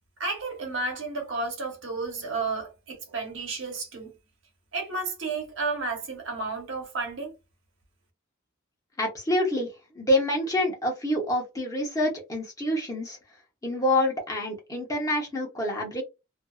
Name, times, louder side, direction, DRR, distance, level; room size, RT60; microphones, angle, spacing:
voice 1, 0.2-4.2 4.7-7.3, right 3 dB, 85° right, 1.1 m, -32 dB
voice 2, 9.0-9.7 9.9-13.2 13.6-16.0, left 1 dB, 15° left, 0.9 m, -27 dB
2.6 x 2.3 x 2.3 m
head